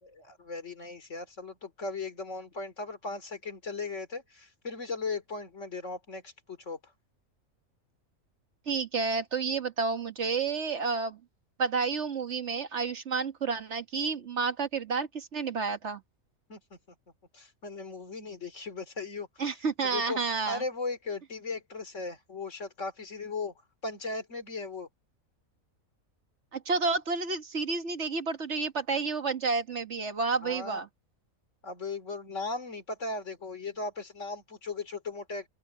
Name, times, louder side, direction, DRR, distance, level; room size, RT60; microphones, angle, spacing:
voice 1, 0.0-6.9 16.5-16.8 17.3-19.3 19.8-20.2 20.5-23.5 23.8-24.9 30.4-30.8 31.6-35.5, left 3 dB, 60° left, 3.2 m, -37 dB
voice 2, 8.7-11.2 11.6-16.0 19.4-20.6 26.5-30.9, right 4 dB, 55° right, 1.7 m, -30 dB
open air
omnidirectional pair, 1.5 m